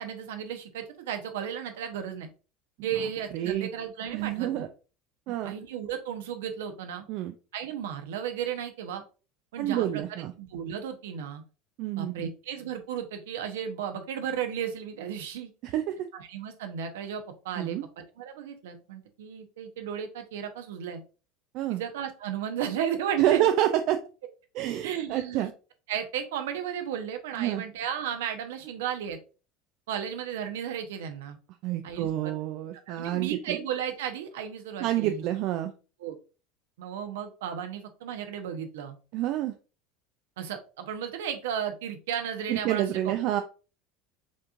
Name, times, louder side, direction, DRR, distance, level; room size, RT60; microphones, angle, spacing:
voice 1, 0.0-2.3 2.8-4.6 5.4-7.0 7.5-9.0 9.5-10.0 10.4-11.4 12.0-15.5 16.1-17.8 18.2-21.0 21.7-23.5 24.8-25.5 25.9-29.2 29.9-31.4 31.8-32.3 32.9-35.2 36.0-36.1 36.8-39.0 40.4-43.1, right 8 dB, 75° right, 7 dB, 0.8 m, -34 dB
voice 2, 3.3-3.7 4.1-4.7 5.3-5.5 7.1-7.3 9.6-10.3 11.8-12.3 15.6-16.1 17.6-17.9 21.5-21.8 23.2-24.0 24.5-25.5 27.4-27.6 31.6-33.6 34.8-35.7 39.1-39.5 42.5-43.4, right 12 dB, 60° right, 7 dB, 0.4 m, -28 dB
5.2 x 3.6 x 2.5 m, 0.34 s
hypercardioid pair, 80°, 0 cm